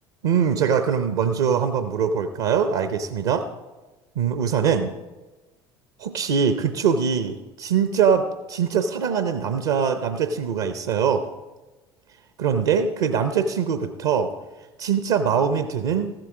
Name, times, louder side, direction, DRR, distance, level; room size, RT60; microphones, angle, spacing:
voice 1, 0.2-3.5 4.2-4.9 6.0-11.3 12.4-14.3 14.8-16.1, right 7 dB, 65° right, 10 dB, 0.7 m, -22 dB
14.5 x 7.7 x 4.8 m, 1.1 s
figure-of-eight pair, 65°, 14 cm